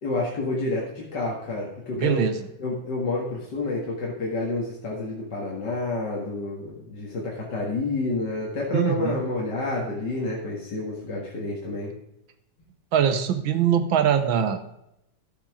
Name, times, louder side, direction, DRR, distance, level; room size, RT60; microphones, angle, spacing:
voice 1, 0.0-2.2 2.6-11.9, left 2 dB, 55° left, -4 dB, 2.5 m, -29 dB
voice 2, 2.0-2.3 8.7-9.2 12.9-14.6, right 8 dB, 75° right, 9 dB, 1.8 m, -22 dB
12.0 x 8.6 x 4.9 m, 0.83 s
omnidirectional pair, 2.2 m